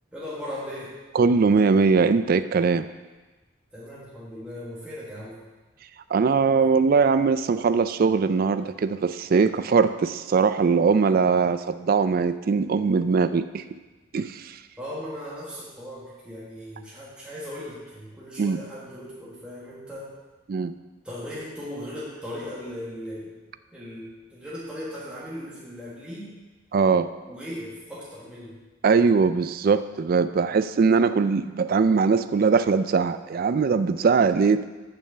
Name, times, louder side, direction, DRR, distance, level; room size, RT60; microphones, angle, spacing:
voice 1, 0.1-1.0 3.7-5.4 14.8-20.1 21.0-23.3 23.7-26.3 27.2-28.6, equal, 5° right, -8 dB, 1.6 m, -38 dB
voice 2, 1.1-2.9 6.1-13.6 14.1-14.6 18.4-18.6 20.5-20.7 26.7-27.1 28.8-34.6, right 5 dB, 45° right, 12 dB, 0.3 m, -21 dB
6.6 x 6.1 x 6.8 m, 1.2 s
head